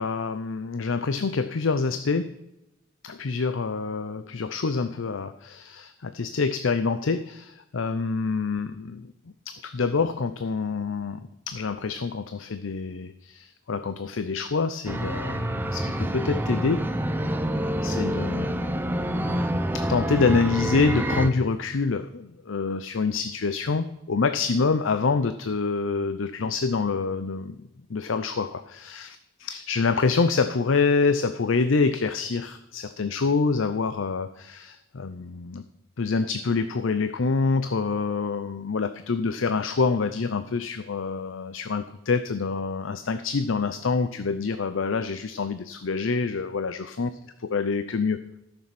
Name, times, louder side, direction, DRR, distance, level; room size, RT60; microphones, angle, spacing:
voice 1, 0.0-2.3 3.0-9.1 9.5-11.2 11.5-16.8 17.8-18.5 19.7-29.2 29.4-35.6 36.0-47.1 47.5-48.2, left 4 dB, 70° left, 11 dB, 0.6 m, -26 dB
sound 1, 14.9-21.3, right 1 dB, 10° right, 0.7 m, -27 dB
12.5 x 6.9 x 5.9 m, 0.90 s
head